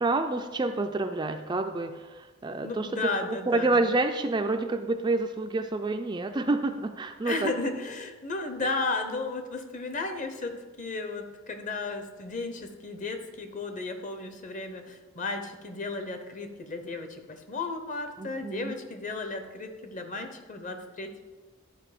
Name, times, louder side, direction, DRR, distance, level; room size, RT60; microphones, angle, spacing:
voice 1, 0.0-2.9 3.5-7.5 18.2-18.7, right 2 dB, 20° right, 6 dB, 0.3 m, -28 dB
voice 2, 2.5-3.8 7.2-21.2, left 3 dB, 35° left, 7 dB, 0.8 m, -34 dB
11.0 x 5.0 x 5.0 m, 1.3 s
head